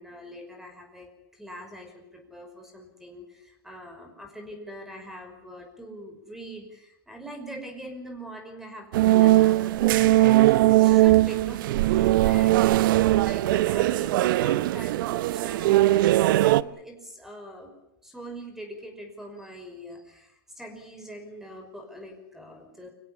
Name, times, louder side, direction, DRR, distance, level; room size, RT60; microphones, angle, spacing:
voice 1, 0.0-17.7 18.0-22.9, equal, 5° right, 5 dB, 5.7 m, -43 dB
sound 1, 8.9-16.6, right 16 dB, 65° right, 0.8 m, -20 dB
25.5 x 16.5 x 8.7 m, 0.87 s
hypercardioid pair, 120°, 12 cm